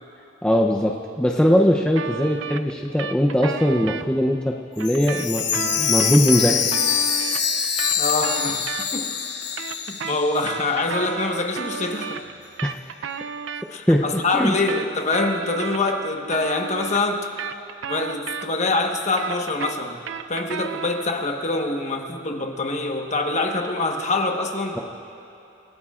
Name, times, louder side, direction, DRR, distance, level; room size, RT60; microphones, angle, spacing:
voice 1, 0.4-6.7 13.9-14.0 14.3-14.6, equal, 5° left, 0 dB, 0.6 m, -20 dB
sound 1, 1.9-4.0 4.8-9.1 9.4-13.6 14.4-18.7 19.0-21.1, right 6 dB, 90° right, 0.5 m, -33 dB
Chime, 4.8-10.7 11.0-11.1 11.7-11.8, left 7 dB, 60° left, 1.2 m, -24 dB
voice 2, 7.9-9.1 9.9-12.2 13.7-17.3 17.9-20.0 20.3-24.8, left 3 dB, 40° left, 3 dB, 1.2 m, -25 dB
29.0 x 17.0 x 2.5 m, 2.9 s
head